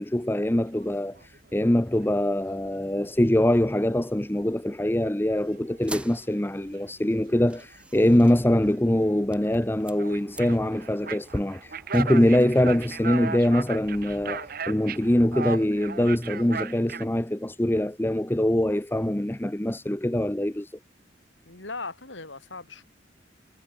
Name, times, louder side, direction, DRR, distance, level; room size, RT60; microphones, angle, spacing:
voice 1, 0.0-20.7, left 1 dB, 10° left, 0.8 m, -23 dB
sound 1, 0.8-1.6 1.9-2.4 2.7-17.0, right 5 dB, 50° right, 1.3 m, -38 dB
sound 2, 5.7-15.3, right 1 dB, 5° right, 2.4 m, -45 dB
voice 2, 21.5-22.9, left 3 dB, 90° left, 6.3 m, -38 dB
head